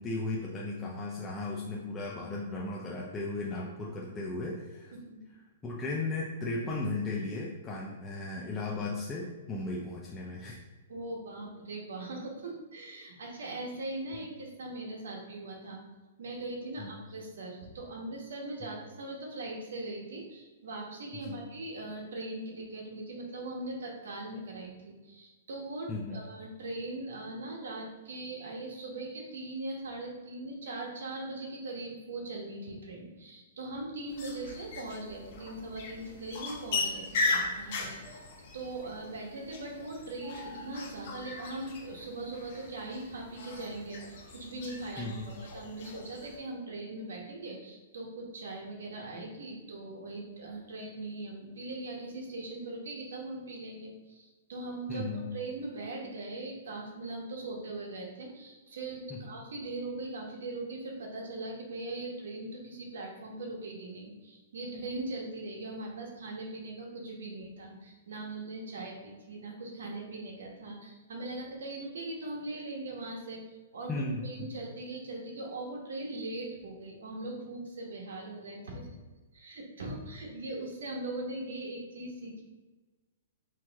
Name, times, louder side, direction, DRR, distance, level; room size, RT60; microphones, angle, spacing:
voice 1, 0.0-4.9 5.6-10.6 16.8-17.0 21.1-21.4 25.9-26.2 45.0-45.3 54.9-55.3 59.1-59.2 73.9-74.5, left 2 dB, 15° left, -4 dB, 0.5 m, -36 dB
voice 2, 10.9-15.8 16.2-38.2 38.5-73.4 73.7-78.9 79.3-82.4, right 2 dB, 80° right, -1 dB, 1.4 m, -40 dB
sound 1, 34.1-46.4, left 3 dB, 50° left, 1.2 m, -38 dB
4.5 x 3.0 x 3.6 m, 1.2 s
hypercardioid pair, 160°, 0 cm